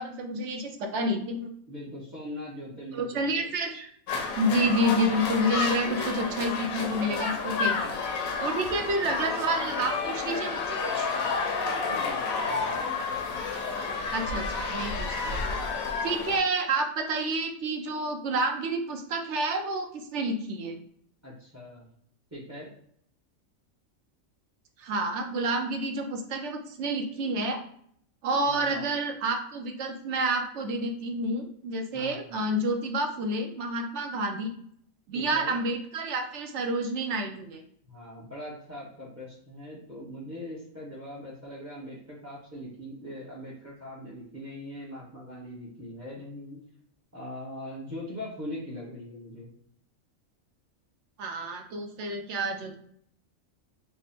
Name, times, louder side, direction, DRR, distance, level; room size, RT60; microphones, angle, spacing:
voice 1, 0.0-1.5 2.9-3.9 4.4-7.9 8.4-11.1 14.1-15.4 16.0-20.8 24.8-27.6 28.2-34.5 35.1-37.6 51.2-52.8, right 1 dB, 65° right, 4 dB, 0.8 m, -29 dB
voice 2, 1.7-3.5 4.6-4.7 11.6-12.7 21.2-21.8 22.3-22.7 28.5-28.8 31.9-32.4 35.1-35.6 37.9-46.6 47.1-49.5, left 1 dB, 15° right, -8 dB, 0.8 m, -41 dB
sound 1, 4.1-16.4, left 4 dB, 80° left, 1.0 m, -30 dB
3.4 x 2.1 x 4.1 m, 0.65 s
omnidirectional pair, 1.4 m